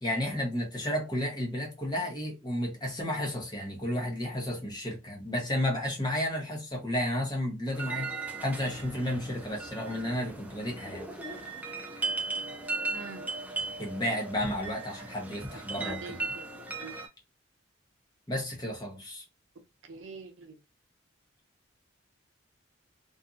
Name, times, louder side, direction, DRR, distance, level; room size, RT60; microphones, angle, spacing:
voice 1, 0.0-11.0 13.8-16.2 18.3-19.2, left 1 dB, 20° left, 0.9 m, -32 dB
sound 1, 7.7-17.1, right 3 dB, 10° right, 0.3 m, -37 dB
voice 2, 12.9-13.3 15.8-16.5 16.8-16.9 19.8-20.5, right 4 dB, 70° right, 0.6 m, -43 dB
2.6 x 2.5 x 2.3 m
head